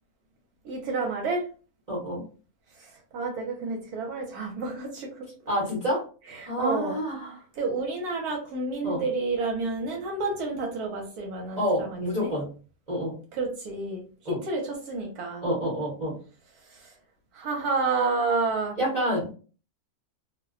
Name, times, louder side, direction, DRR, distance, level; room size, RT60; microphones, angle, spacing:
voice 1, 0.6-1.5 3.1-5.1 6.4-7.0 7.6-12.3 13.4-14.0 14.4-15.4 17.3-18.8, right 3 dB, 75° right, 1 dB, 1.2 m, -29 dB
voice 2, 1.9-2.2 5.5-6.0 6.5-7.4 8.8-9.0 11.6-12.5 12.9-13.1 14.2-14.4 15.4-16.2 18.8-19.3, equal, 30° right, -7 dB, 0.9 m, -28 dB
2.6 x 2.1 x 2.4 m, 0.37 s
omnidirectional pair, 1.6 m